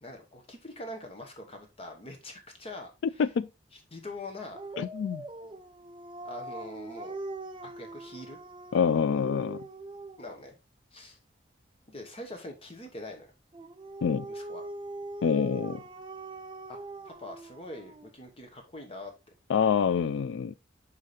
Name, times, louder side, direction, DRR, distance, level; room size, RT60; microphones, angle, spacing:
voice 1, 0.0-3.3 3.7-4.8 6.2-7.2 7.6-8.4 10.2-10.6 10.9-11.2 11.9-13.3 14.3-14.6 16.7-16.8 17.0-19.1, left 2 dB, 30° left, 1.0 m, -43 dB
Dog, 4.5-10.4 13.5-18.1, right 2 dB, 25° right, 0.4 m, -42 dB
voice 2, 4.8-5.2 8.7-9.6 14.0-14.3 15.2-15.8 19.5-20.5, left 6 dB, 75° left, 0.3 m, -26 dB
5.6 x 5.0 x 4.0 m
head